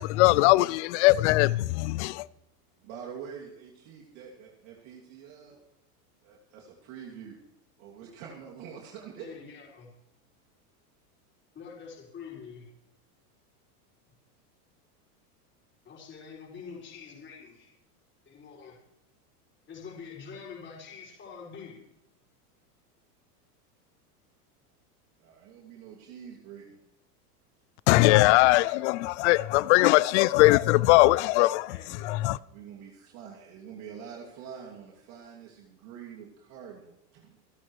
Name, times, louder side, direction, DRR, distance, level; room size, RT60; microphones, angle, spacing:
voice 1, 0.0-2.3 27.9-31.8 32.0-32.4, left 19 dB, 50° left, 0.5 m, -21 dB
voice 2, 2.8-5.6 6.2-7.4 7.8-9.3 25.2-26.8 32.5-37.4, right 7 dB, 55° right, 2.9 m, -45 dB
voice 3, 9.2-9.9 11.5-12.6 15.8-17.7 18.3-18.8 19.7-21.8 31.7-32.3, left 6 dB, 25° left, 5.9 m, -45 dB
27.0 x 12.5 x 3.2 m
supercardioid pair, 130°, 47 cm